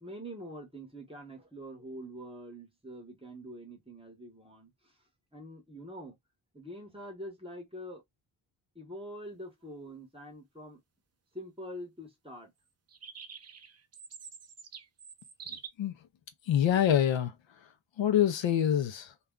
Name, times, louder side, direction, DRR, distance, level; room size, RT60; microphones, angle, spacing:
voice 1, 0.0-4.9 5.3-6.2 6.5-8.0 8.7-10.8 11.3-12.5, equal, 10° right, 0.9 m, -45 dB
sound 1, 12.9-15.7, right 6 dB, 35° right, 0.4 m, -46 dB
voice 2, 16.5-17.3 18.0-19.1, left 10 dB, 70° left, 0.5 m, -25 dB
2.3 x 2.1 x 3.5 m
wide cardioid pair, 165°, 48 cm